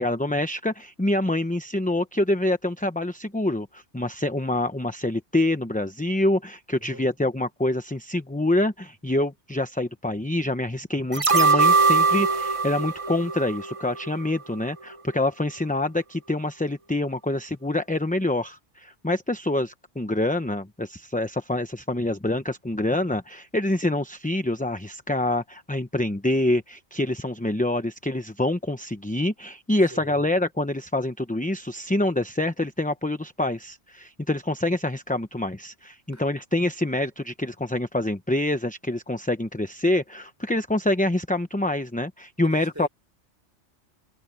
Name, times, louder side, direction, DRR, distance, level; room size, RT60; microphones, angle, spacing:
voice 1, 0.0-42.9, left 1 dB, 10° left, 0.7 m, -26 dB
voice 2, 6.8-7.1 29.9-30.2 36.1-36.2 42.4-42.9, right 1 dB, 15° right, 4.3 m, -42 dB
sound 1, 11.1-14.3 14.6-14.7, right 4 dB, 30° right, 1.0 m, -21 dB
omnidirectional pair, 1.2 m